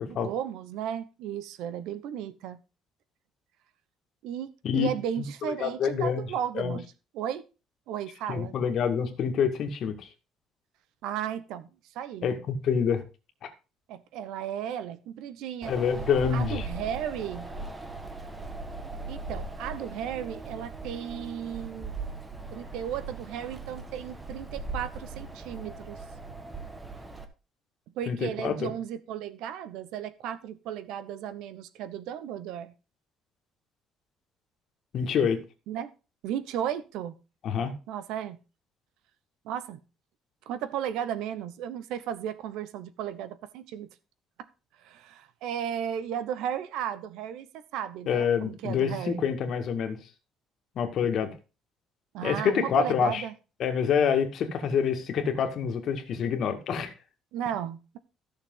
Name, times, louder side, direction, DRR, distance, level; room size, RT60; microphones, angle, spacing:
voice 1, 0.1-2.6 4.2-6.8 7.1-7.4 7.9-8.5 11.0-11.7 11.9-12.3 13.9-15.7 16.3-17.5 19.1-22.0 22.5-26.0 27.9-32.7 35.7-35.9 36.2-37.1 37.9-38.4 39.4-39.8 40.5-43.9 44.8-49.3 52.1-53.3 57.3-58.0, right 9 dB, 85° right, 14 dB, 1.1 m, -35 dB
voice 2, 5.5-6.3 6.5-6.8 8.3-10.1 12.2-13.0 15.7-16.7 28.1-28.7 34.9-35.4 37.4-37.7 48.1-50.0 50.8-51.3 52.2-53.2 53.6-56.9, left 7 dB, 45° left, 5 dB, 2.0 m, -27 dB
Wind, 15.6-27.2, right 3 dB, 10° right, 1.3 m, -39 dB
14.5 x 6.6 x 3.9 m, 0.31 s
cardioid pair, 170°, 0 cm